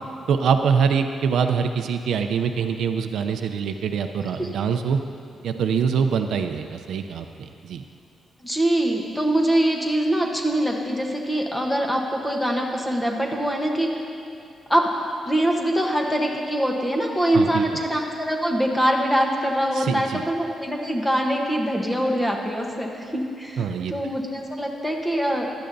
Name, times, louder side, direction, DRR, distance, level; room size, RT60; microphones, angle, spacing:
voice 1, 0.3-5.0 5.4-7.8 17.3-17.8 19.7-20.2 23.6-23.9, right 6 dB, 80° right, 7 dB, 0.5 m, -24 dB
voice 2, 8.4-14.0 14.7-14.9 15.2-25.5, right 1 dB, 5° left, 1 dB, 1.0 m, -23 dB
15.5 x 11.5 x 2.7 m, 2.7 s
wide cardioid pair, 155°, 0 cm